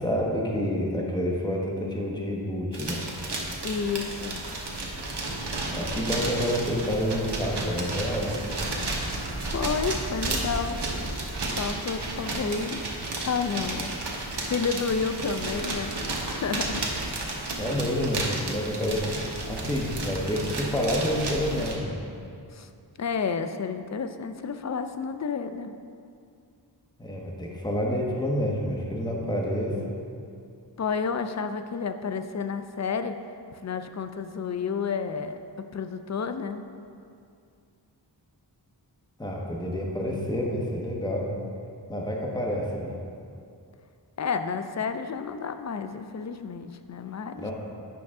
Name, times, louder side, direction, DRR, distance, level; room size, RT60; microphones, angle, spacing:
voice 1, 0.0-3.0 5.7-8.5 17.6-19.0 19.5-22.0 27.0-29.8 39.2-41.3 41.9-42.9 47.4-47.5, equal, 10° left, -2 dB, 1.0 m, -28 dB
sound 1, 2.7-21.8, right 2 dB, 65° right, 1.1 m, -32 dB
voice 2, 3.6-4.4 9.0-10.8 11.4-12.9 13.2-14.0 14.4-16.0 16.2-17.0 22.5-22.7 23.0-25.7 30.8-33.2 33.6-36.6 44.2-47.5, left 5 dB, 40° left, 9 dB, 0.4 m, -31 dB
8.8 x 5.8 x 3.6 m, 2.4 s
wide cardioid pair, 65°, 44 cm